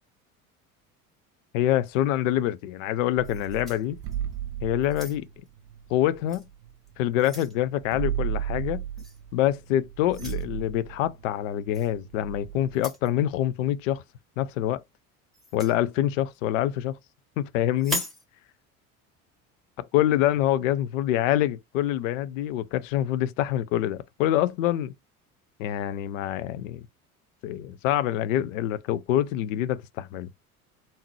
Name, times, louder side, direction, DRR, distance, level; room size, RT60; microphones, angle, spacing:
voice 1, 1.5-4.0 4.6-5.3 5.9-6.4 7.0-8.8 9.3-14.0 14.4-14.8 15.5-17.0 17.4-18.0 19.9-24.9 25.6-26.8 27.4-30.3, left 12 dB, 60° left, 0.5 m, -26 dB
sound 1, 3.2-4.4 4.8-5.5 6.3-6.5 6.9-7.6 9.0-9.2 10.1-10.4 11.7-11.9 12.7-13.1 15.3-15.8 17.8-18.2, equal, ahead, 1.6 m, -37 dB
sound 2, 3.2-7.1 7.3-7.4 7.6-12.8, right 10 dB, 35° right, 0.5 m, -35 dB
3.5 x 2.7 x 3.0 m
figure-of-eight pair, 65°, 44 cm